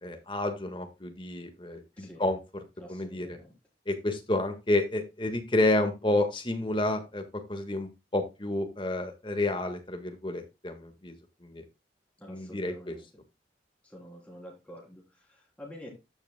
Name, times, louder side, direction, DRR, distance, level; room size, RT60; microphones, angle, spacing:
voice 1, 0.0-2.4 2.9-3.4 3.9-7.2 7.5-11.1 11.4-11.6 12.3-13.0, left 2 dB, 25° left, 5 dB, 1.6 m, -30 dB
voice 2, 2.0-2.3 2.8-3.5 12.2-13.0 13.8-15.9, equal, 5° left, -3 dB, 3.4 m, -48 dB
14.5 x 6.0 x 2.2 m, 0.25 s
head